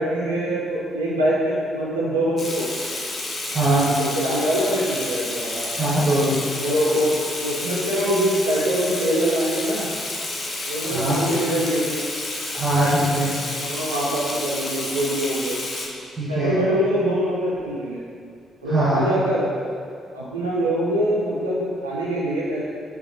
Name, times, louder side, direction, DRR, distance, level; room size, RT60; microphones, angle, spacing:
voice 1, 0.0-2.9 3.7-5.7 6.6-9.9 10.7-12.1 13.6-15.6 16.3-18.0 18.6-19.5 20.1-22.6, equal, 85° right, -6 dB, 0.4 m, -24 dB
Water tap faucet / Sink (filling or washing), 2.4-15.9, left 2 dB, 45° left, 0.6 m, -30 dB
voice 2, 3.5-3.9 5.8-6.4 10.8-11.2 12.5-13.3 16.2-16.5 18.7-19.1, right 1 dB, 35° right, -8 dB, 0.8 m, -21 dB
5.1 x 2.4 x 2.6 m, 2.2 s
figure-of-eight pair, 40°, 0 cm